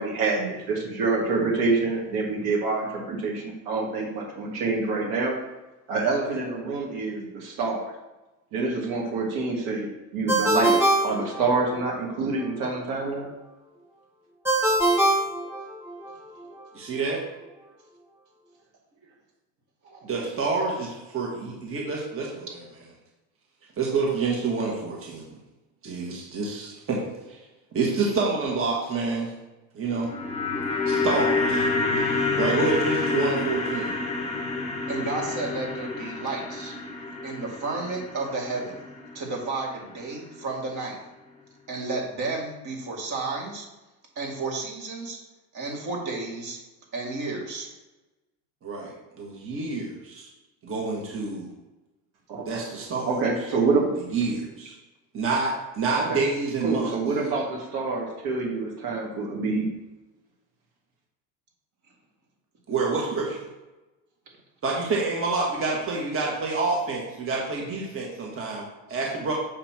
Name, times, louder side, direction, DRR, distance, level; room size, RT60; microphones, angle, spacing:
voice 1, 0.0-5.3 5.9-7.9 8.5-9.9 10.1-10.8 11.0-13.3 52.3-52.4 53.1-53.9 56.0-56.2 56.6-59.7, right 3 dB, 75° right, -2 dB, 1.6 m, -26 dB
Ringtone, 10.3-12.0 14.5-16.1, right 1 dB, 5° right, 1.1 m, -23 dB
voice 2, 16.7-17.2 20.0-22.6 23.8-25.3 25.8-27.4 27.7-29.3 29.7-30.1 30.9-31.7 32.0-34.0 48.6-50.3 50.6-51.5 52.4-53.2 54.1-54.7 55.1-56.9 62.7-63.4 64.6-69.3, right 3 dB, 35° right, -2 dB, 1.4 m, -28 dB
sound 1, 29.9-40.1 40.4-40.5, left 3 dB, 20° left, 1.0 m, -28 dB
voice 3, 34.9-36.7 37.2-38.8 39.1-41.0 41.7-43.6 44.2-45.2 45.5-46.6 46.9-47.7, right 3 dB, 55° right, -1 dB, 2.1 m, -32 dB
6.7 x 3.0 x 5.9 m, 1.1 s
supercardioid pair, 110°, 36 cm